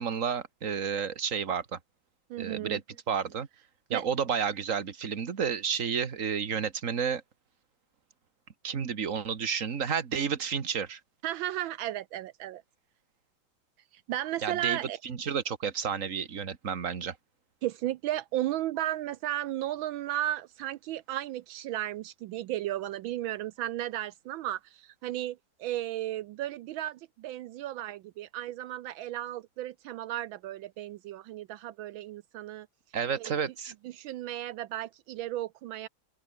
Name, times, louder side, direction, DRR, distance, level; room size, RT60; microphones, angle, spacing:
voice 1, 0.0-1.8 2.4-2.8 3.1-3.5 3.9-7.2 8.6-11.0 14.4-17.2 32.9-33.7, right 7 dB, 40° right, 1.8 m, -31 dB
voice 2, 2.3-2.8 3.9-4.0 11.2-12.6 14.1-15.0 17.6-32.7 33.2-33.3 33.8-35.9, right 13 dB, 75° right, 1.3 m, -34 dB
open air
omnidirectional pair, 2.3 m